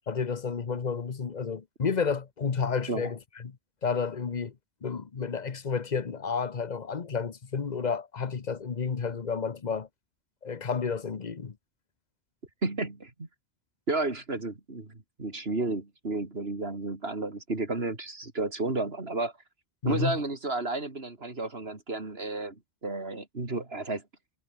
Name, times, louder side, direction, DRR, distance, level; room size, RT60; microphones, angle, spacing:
voice 1, 0.0-3.6 3.8-4.5 4.8-9.9 10.4-11.6 19.8-20.2, left 5 dB, 40° left, 1.1 m, -31 dB
voice 2, 12.6-13.3 13.9-19.3 19.8-24.0, right 2 dB, 65° right, 3.8 m, -32 dB
omnidirectional pair, 1.1 m